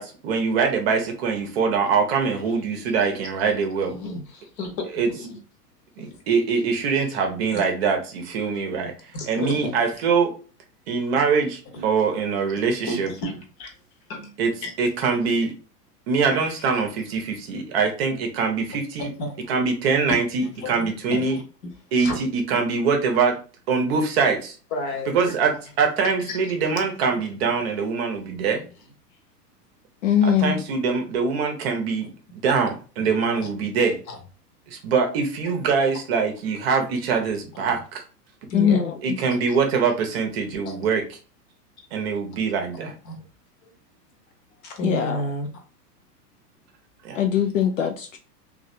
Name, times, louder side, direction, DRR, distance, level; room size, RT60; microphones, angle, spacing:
voice 1, 0.0-3.9 5.0-5.1 6.0-8.9 9.3-10.3 10.9-13.1 14.4-14.5 14.8-15.5 16.1-19.1 19.5-21.4 21.9-23.4 23.7-24.6 25.1-28.6 30.2-34.0 34.7-38.0 39.0-41.1 41.9-42.9 47.0-47.2, right 5 dB, 40° right, 0.8 m, -23 dB
voice 2, 2.4-3.1 3.9-5.4 6.0-6.1 6.5-7.1 7.5-7.7 9.1-10.0 11.7-11.8 12.8-13.7 14.1-14.7 16.3-16.7 19.0-19.4 20.4-21.4 22.0-22.2 24.7-25.4 26.2-27.2 28.1-28.2 28.5-28.7 33.4-33.5 34.1-34.2 37.5-37.6 38.5-38.8 39.2-39.6 40.7-40.8 41.8-41.9 43.0-43.2 44.6-45.5, left 1 dB, 35° left, 0.9 m, -33 dB
voice 3, 30.0-30.6 38.5-38.8 44.8-45.2 47.2-48.2, left 8 dB, 55° left, 0.5 m, -21 dB
3.1 x 2.5 x 2.6 m
figure-of-eight pair, 100°, 48 cm